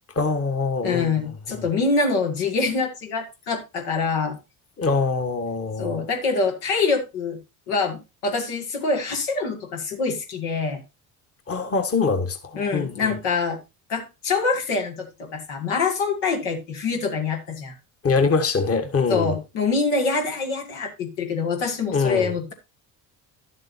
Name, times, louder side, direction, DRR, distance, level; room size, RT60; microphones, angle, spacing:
voice 1, 0.1-1.6 4.8-6.0 11.5-13.2 18.0-19.3 21.9-22.3, left 4 dB, 30° left, 1.5 m, -24 dB
voice 2, 0.8-4.4 5.8-7.4 7.7-10.8 12.5-13.6 13.9-17.7 19.1-22.5, left 4 dB, 85° left, 2.3 m, -25 dB
11.5 x 7.5 x 2.7 m
hypercardioid pair, 60°, 43 cm